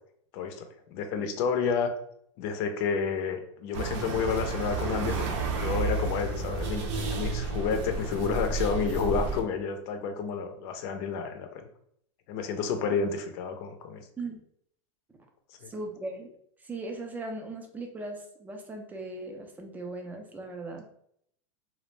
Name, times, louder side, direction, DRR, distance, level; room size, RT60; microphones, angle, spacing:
voice 1, 0.3-0.6 0.9-1.9 2.4-11.6 12.3-14.0 15.6-15.7, left 5 dB, 50° left, 7 dB, 0.5 m, -30 dB
sound 1, 3.7-9.4, right 3 dB, 60° right, 0.6 m, -31 dB
voice 2, 15.7-16.3 16.6-20.8, right 2 dB, 10° right, 3 dB, 0.4 m, -38 dB
2.3 x 2.0 x 3.2 m, 0.69 s
supercardioid pair, 135°, 16 cm